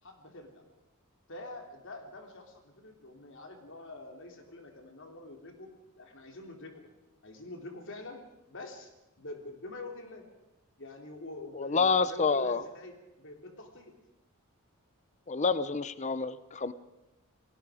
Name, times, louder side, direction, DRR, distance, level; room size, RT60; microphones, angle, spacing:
voice 1, 0.0-0.6 1.3-6.9 7.2-8.9 9.2-10.3 10.8-13.9, left 2 dB, 55° left, 4 dB, 3.2 m, -46 dB
voice 2, 11.6-12.6 15.3-16.7, left 4 dB, 30° left, 14 dB, 0.7 m, -28 dB
30.0 x 19.0 x 5.0 m, 0.96 s
head